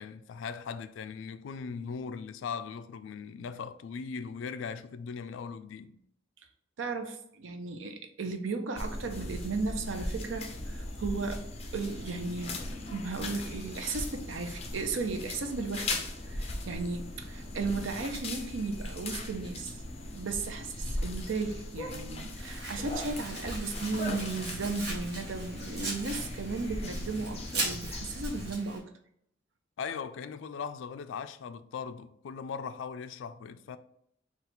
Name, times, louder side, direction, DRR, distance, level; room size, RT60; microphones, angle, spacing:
voice 1, 0.0-6.0 29.8-33.8, left 6 dB, 75° left, 0.3 m, -39 dB
voice 2, 6.8-11.5 11.7-12.6 12.9-19.7 20.1-28.9, right 3 dB, 85° right, 0.6 m, -35 dB
sound 1, 8.8-28.5, left 2 dB, 35° left, 0.6 m, -38 dB
Domestic sounds home sounds, 22.4-28.8, right 2 dB, 55° right, 1.1 m, -40 dB
4.0 x 2.4 x 4.2 m
head